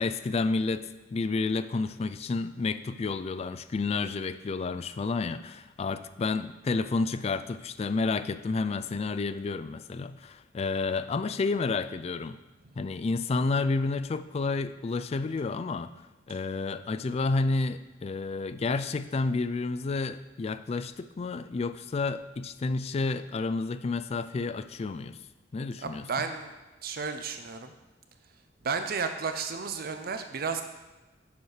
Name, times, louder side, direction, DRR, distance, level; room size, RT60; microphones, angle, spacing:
voice 1, 0.0-12.4 12.8-15.9 16.3-25.2 25.5-26.1, left 3 dB, 35° left, 12 dB, 0.3 m, -30 dB
voice 2, 25.8-26.5 26.8-27.7 28.6-30.6, right 5 dB, 55° right, 8 dB, 0.6 m, -32 dB
7.2 x 4.7 x 6.5 m, 1.2 s
head